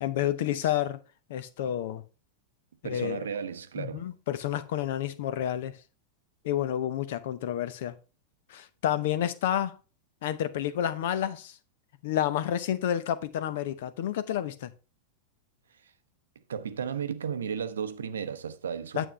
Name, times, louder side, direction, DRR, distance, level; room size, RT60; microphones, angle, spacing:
voice 1, 0.0-1.0 1.3-2.0 2.8-3.2 3.8-5.8 6.4-8.0 8.5-9.8 10.2-11.6 12.0-14.7 18.9-19.1, left 11 dB, 55° left, 0.8 m, -30 dB
voice 2, 2.8-4.1 16.5-19.1, right 7 dB, 65° right, 0.7 m, -34 dB
9.2 x 8.1 x 3.3 m
figure-of-eight pair, 90°, 0 cm